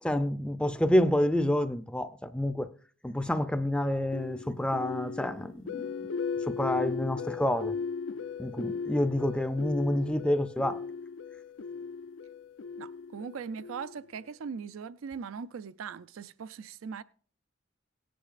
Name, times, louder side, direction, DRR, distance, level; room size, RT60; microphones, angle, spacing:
voice 1, 0.0-2.7 3.0-6.1 6.5-7.8 8.4-10.8, left 1 dB, 5° left, 0.4 m, -28 dB
sound 1, 4.1-14.2, left 5 dB, 70° left, 0.4 m, -37 dB
voice 2, 12.8-17.0, right 6 dB, 85° right, 0.4 m, -40 dB
17.5 x 10.0 x 2.5 m
head